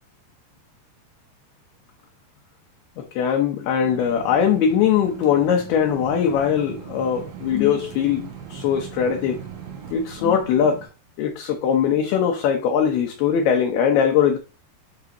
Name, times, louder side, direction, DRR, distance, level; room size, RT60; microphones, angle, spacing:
voice 1, 3.0-9.4 9.9-10.9 11.2-14.4, left 8 dB, 75° left, 2.6 m, -21 dB
sound 1, 3.8-10.9, right 7 dB, 80° right, 4.4 m, -39 dB
11.0 x 4.8 x 3.0 m
omnidirectional pair, 5.2 m